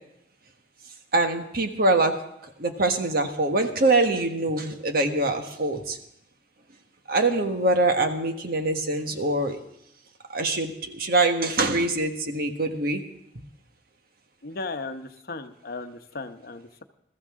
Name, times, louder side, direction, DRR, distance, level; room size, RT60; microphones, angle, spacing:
voice 1, 1.1-2.1 2.6-6.0 7.1-9.6 10.3-13.0, right 2 dB, 55° right, 5 dB, 1.4 m, -24 dB
voice 2, 14.4-16.8, left 3 dB, 55° left, 8 dB, 0.9 m, -36 dB
21.0 x 14.0 x 3.7 m, 0.80 s
head